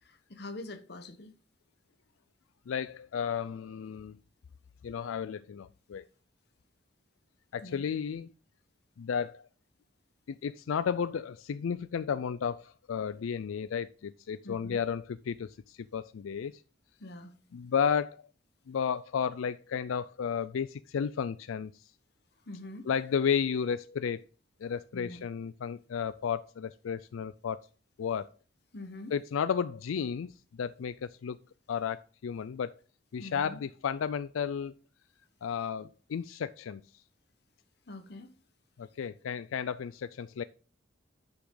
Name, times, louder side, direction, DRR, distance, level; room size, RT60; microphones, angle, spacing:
voice 1, 0.0-1.3 7.6-7.9 14.4-14.8 17.0-17.4 22.5-22.9 24.9-25.2 28.7-29.1 33.2-33.6 37.9-38.3, left 2 dB, 55° left, 1.0 m, -44 dB
voice 2, 2.7-4.2 4.8-6.0 7.5-8.3 9.0-9.5 10.3-16.5 17.5-18.2 18.7-21.7 22.9-24.2 24.6-27.7 28.0-28.3 29.1-31.4 31.7-32.7 33.1-34.7 35.4-36.8 38.8-40.4, left 7 dB, 85° left, 0.4 m, -33 dB
9.8 x 6.0 x 3.8 m
head